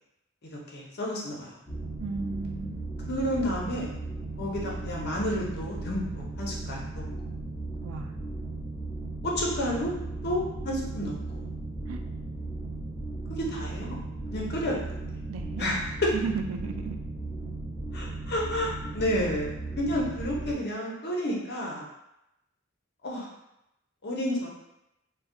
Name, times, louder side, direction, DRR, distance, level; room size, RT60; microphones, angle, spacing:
voice 1, 0.7-1.6 3.1-3.9 4.4-7.0 9.2-9.9 10.2-11.4 13.3-14.0 14.3-14.8 15.6-16.1 17.9-19.5 19.8-21.9 23.0-23.3 24.0-24.5, left 1 dB, 50° left, -2 dB, 0.7 m, -30 dB
sound 1, 1.7-20.5, right 2 dB, ahead, 0.6 m, -36 dB
voice 2, 2.0-2.8 7.8-8.1 11.9-12.0 15.3-15.7 16.2-17.0, right 4 dB, 70° right, 6 dB, 0.3 m, -34 dB
2.3 x 2.1 x 3.6 m, 0.87 s
head